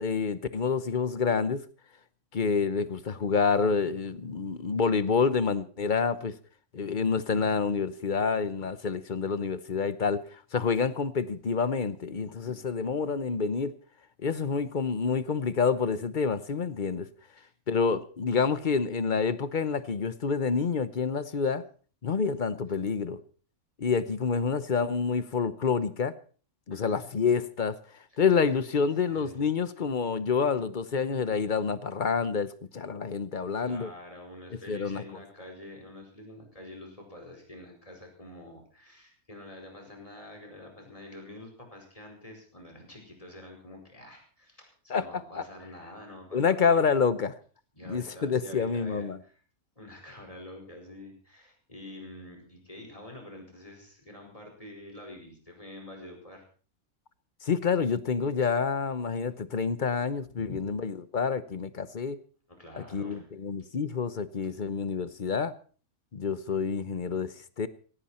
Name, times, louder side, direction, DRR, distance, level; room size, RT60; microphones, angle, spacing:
voice 1, 0.0-1.6 2.3-6.3 6.7-13.7 14.2-17.1 17.7-21.6 22.0-23.2 23.8-26.1 26.7-27.8 28.2-33.9 34.7-35.0 44.9-45.0 45.3-45.4 46.3-47.3 47.9-49.2 57.4-62.2 62.8-65.5 66.1-67.7, left 5 dB, 40° left, 0.9 m, -28 dB
voice 2, 12.3-12.7 17.4-17.5 26.7-27.1 28.1-28.2 29.1-29.4 33.6-46.8 47.7-49.3 49.8-56.4 60.4-60.6 62.6-63.3, left 1 dB, 25° left, 5.1 m, -47 dB
17.5 x 16.5 x 4.3 m
omnidirectional pair, 1.5 m